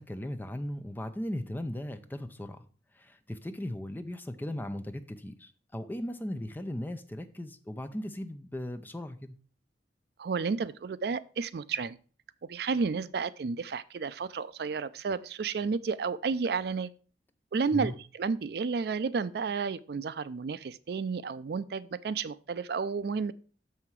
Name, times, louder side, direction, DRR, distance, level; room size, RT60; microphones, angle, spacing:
voice 1, 0.0-2.6 3.0-9.3 17.7-17.9, left 1 dB, 10° left, 0.5 m, -37 dB
voice 2, 10.2-12.0 12.5-16.9 17.5-23.3, right 5 dB, 60° right, 0.4 m, -32 dB
6.7 x 5.7 x 4.6 m
head